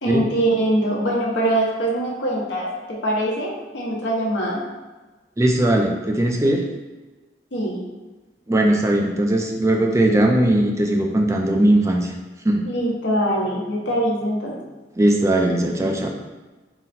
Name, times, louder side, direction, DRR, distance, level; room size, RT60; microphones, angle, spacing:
voice 1, 0.0-4.6 7.5-7.9 12.6-14.6, right 1 dB, 80° left, -4 dB, 1.0 m, -23 dB
voice 2, 5.4-6.6 8.5-12.1 12.4-12.6 15.0-16.1, right 1 dB, 15° right, 2 dB, 0.4 m, -19 dB
3.9 x 2.1 x 4.1 m, 1.2 s
head